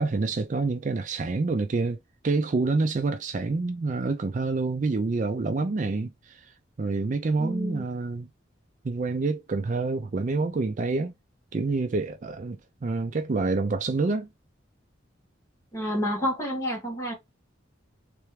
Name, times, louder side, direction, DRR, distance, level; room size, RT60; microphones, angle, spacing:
voice 1, 0.0-2.0 2.2-6.5 6.8-8.3 8.8-11.1 11.5-14.3, right 3 dB, 40° right, 0.4 m, -27 dB
voice 2, 7.4-7.8 15.7-17.1, equal, 15° left, 1.6 m, -29 dB
3.4 x 3.3 x 3.2 m
head